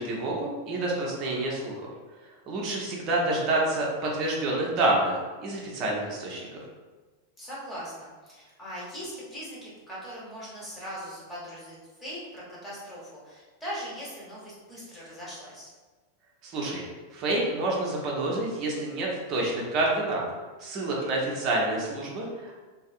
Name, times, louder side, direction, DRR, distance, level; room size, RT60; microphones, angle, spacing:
voice 1, 0.0-1.8 2.2-6.6 16.4-16.8 17.1-20.2 20.6-22.5, right 2 dB, 35° right, -3 dB, 0.6 m, -28 dB
voice 2, 7.4-15.7, equal, 10° left, -7 dB, 1.1 m, -40 dB
2.6 x 2.6 x 2.4 m, 1.3 s
figure-of-eight pair, 90°, 0 cm